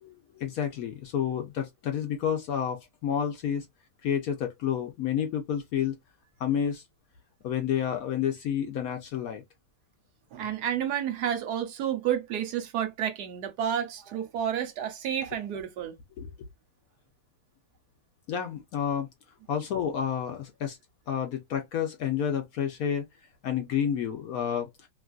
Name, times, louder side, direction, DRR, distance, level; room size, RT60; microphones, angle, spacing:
voice 1, 0.0-3.6 4.0-5.9 6.4-6.8 7.4-9.4 16.2-16.3 18.3-19.1 19.5-20.8 21.1-23.0 23.4-24.7, left 8 dB, 65° left, 0.9 m, -30 dB
voice 2, 10.3-16.0, right 9 dB, 70° right, 1.2 m, -30 dB
2.9 x 2.4 x 2.3 m
omnidirectional pair, 1.9 m